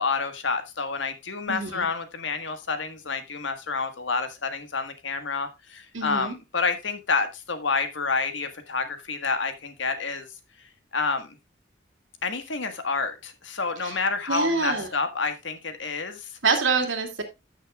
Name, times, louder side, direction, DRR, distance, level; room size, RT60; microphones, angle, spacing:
voice 1, 0.0-10.3 10.9-11.4 12.2-16.3, left 4 dB, 80° left, 8 dB, 1.5 m, -29 dB
voice 2, 1.5-1.9 5.9-6.4 13.8-14.0 14.3-14.9 16.4-17.2, right 4 dB, 85° right, 4 dB, 2.2 m, -26 dB
14.0 x 6.6 x 2.3 m, 0.23 s
head